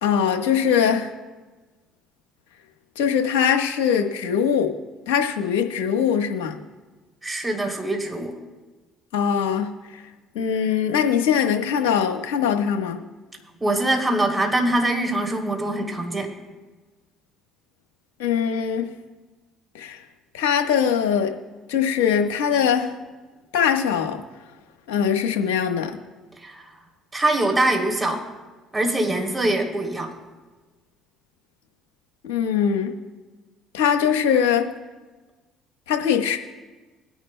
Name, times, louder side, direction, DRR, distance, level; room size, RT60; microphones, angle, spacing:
voice 1, 0.0-1.1 3.0-4.7 5.1-6.6 9.1-10.0 10.3-13.0 18.2-18.9 19.7-20.0 20.3-21.3 21.7-22.9 23.5-24.2 24.9-26.0 32.2-32.9 33.7-34.7 35.9-36.4, left 8 dB, 85° left, 4 dB, 1.2 m, -22 dB
voice 2, 7.2-8.3 13.6-16.3 26.4-26.7 27.1-28.2 28.7-30.1, right 1 dB, 15° right, 1 dB, 3.1 m, -23 dB
21.5 x 10.5 x 2.2 m, 1.3 s
hypercardioid pair, 65°, 0 cm